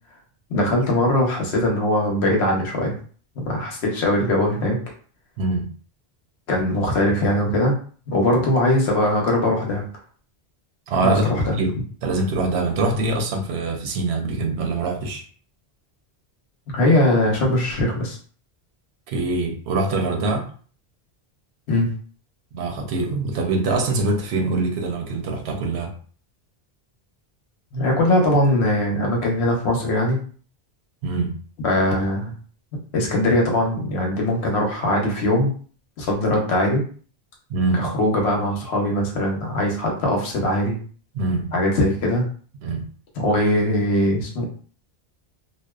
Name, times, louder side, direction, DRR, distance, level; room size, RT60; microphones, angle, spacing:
voice 1, 0.5-2.9 3.5-4.8 6.5-7.8 8.1-9.8 11.0-11.6 16.7-18.2 21.7-21.9 27.7-30.2 31.6-32.3 32.9-35.5 36.0-36.8 37.7-40.8 41.5-42.2 43.2-44.5, left 1 dB, 85° left, 0 dB, 1.0 m, -21 dB
voice 2, 5.4-5.7 10.9-11.3 11.6-15.2 19.1-20.5 22.5-25.9 31.0-31.4 37.5-37.9 41.1-41.5 42.6-42.8, right 2 dB, 85° right, 2 dB, 0.9 m, -24 dB
2.5 x 2.1 x 2.3 m, 0.43 s
omnidirectional pair, 1.1 m